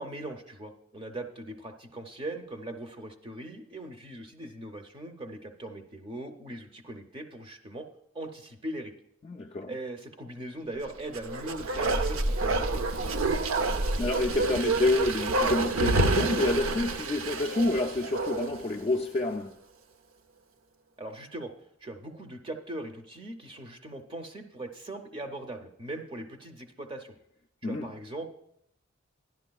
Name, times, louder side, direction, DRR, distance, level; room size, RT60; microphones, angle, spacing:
voice 1, 0.0-7.9 8.1-8.9 9.7-13.3 21.0-27.1 27.6-28.3, right 1 dB, 25° right, 0.6 m, -40 dB
voice 2, 9.2-9.7 14.0-19.5 27.6-27.8, left 2 dB, 30° left, 0.3 m, -28 dB
Bark, 11.1-18.7 19.0-19.1, right 2 dB, 75° right, 0.5 m, -28 dB
12.5 x 10.5 x 2.3 m
head